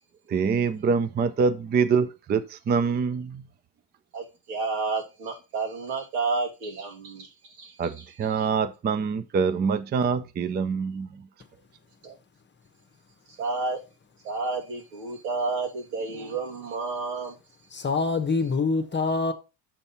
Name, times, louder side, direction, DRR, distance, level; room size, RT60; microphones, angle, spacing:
voice 1, 0.3-3.4 7.8-11.3, right 5 dB, 20° right, 0.5 m, -25 dB
voice 2, 4.1-8.5 12.0-12.2 13.3-13.8 14.2-17.4 17.8-17.9, right 4 dB, 90° right, 2.8 m, -31 dB
voice 3, 17.7-19.3, left 4 dB, 20° left, 1.0 m, -25 dB
7.2 x 5.4 x 4.4 m
supercardioid pair, 105°, 49 cm